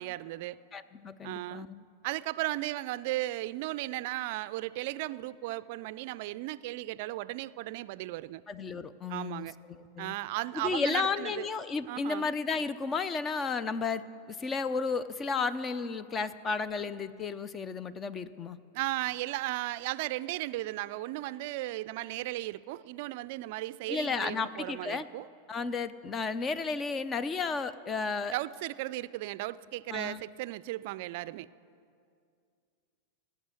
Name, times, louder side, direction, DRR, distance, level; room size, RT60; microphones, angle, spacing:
voice 1, 0.0-0.6 1.2-1.7 2.0-8.4 9.1-9.5 10.0-11.5 11.9-12.3 18.7-25.3 28.3-31.5, right 17 dB, 55° right, 18 dB, 0.4 m, -35 dB
voice 2, 0.7-1.8 8.5-10.2 10.5-18.6 23.9-25.1 25.5-28.3 29.9-30.2, left 4 dB, 25° left, 15 dB, 0.6 m, -33 dB
17.0 x 8.3 x 8.2 m, 2.3 s
hypercardioid pair, 95°, 0 cm